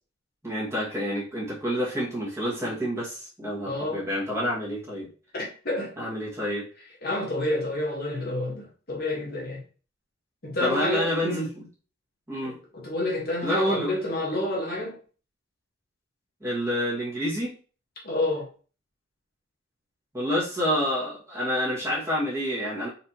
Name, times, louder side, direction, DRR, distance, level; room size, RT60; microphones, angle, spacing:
voice 1, 0.4-5.1 6.0-6.7 10.6-11.7 12.3-12.6 13.4-13.9 16.4-17.5 20.1-22.9, equal, 15° right, 1.7 m, -28 dB
voice 2, 3.6-4.0 5.3-6.1 7.0-9.6 10.4-11.5 12.4-15.0 18.0-18.5, left 1 dB, 45° left, 1.3 m, -29 dB
4.2 x 3.6 x 2.8 m
head